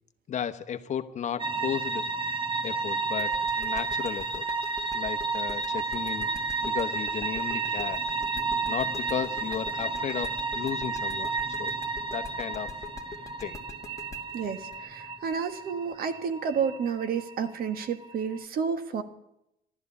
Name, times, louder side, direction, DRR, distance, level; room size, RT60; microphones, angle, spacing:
voice 1, 0.3-2.1 2.6-4.4 4.9-6.3 6.6-8.0 8.7-11.3 11.6-11.8 12.1-12.8 13.4-13.6, left 8 dB, 45° left, 9 dB, 1.0 m, -34 dB
sound 1, 1.4-18.4, right 3 dB, 30° right, 1.4 m, -32 dB
sound 2, 3.2-15.9, left 4 dB, 15° left, 1.9 m, -44 dB
voice 2, 14.3-19.0, right 6 dB, 60° right, 10 dB, 1.5 m, -30 dB
14.0 x 12.5 x 8.4 m, 0.81 s
cardioid pair, 110°, 17 cm